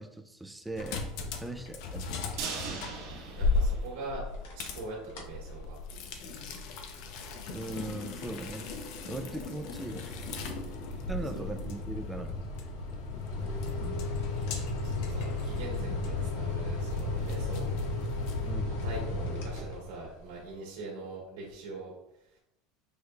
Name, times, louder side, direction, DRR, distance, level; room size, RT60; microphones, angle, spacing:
voice 1, 0.0-1.1 1.4-2.3 7.5-8.6 9.1-10.1 11.1-12.4 13.8-14.1 18.4-18.8, right 2 dB, 5° right, 7 dB, 0.4 m, -39 dB
sound 1, 0.7-18.5, left 3 dB, 60° left, 0.7 m, -38 dB
sound 2, 2.4-4.5 4.8-4.9 5.3-5.4, right 5 dB, 65° right, 1.2 m, -39 dB
voice 2, 2.8-4.2 4.5-5.8 7.9-8.2 9.0-9.5 10.4-10.8 11.2-11.5 12.7-13.0 14.3-17.7 18.6-21.9 22.2-22.4, right 2 dB, 85° right, -3 dB, 1.4 m, -43 dB
sound 3, 4.3-4.8 5.1-5.4 5.9-20.2, left 2 dB, 80° left, 1.0 m, -36 dB
6.1 x 2.3 x 3.3 m, 0.82 s
supercardioid pair, 145°, 0 cm